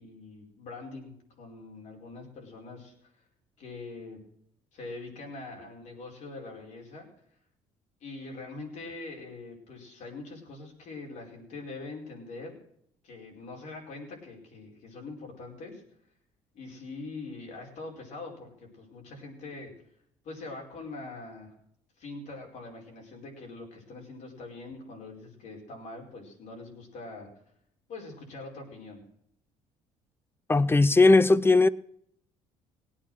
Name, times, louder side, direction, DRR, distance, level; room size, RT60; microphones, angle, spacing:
voice 1, 0.0-3.1 3.6-4.2 4.7-7.1 8.0-12.6 13.0-15.8 16.5-19.7 20.2-21.5 22.0-27.3 27.9-29.0, left 3 dB, 65° left, 4.9 m, -43 dB
voice 2, 30.5-31.7, left 3 dB, 15° left, 0.6 m, -18 dB
18.0 x 8.7 x 6.3 m
supercardioid pair, 80°, 13 cm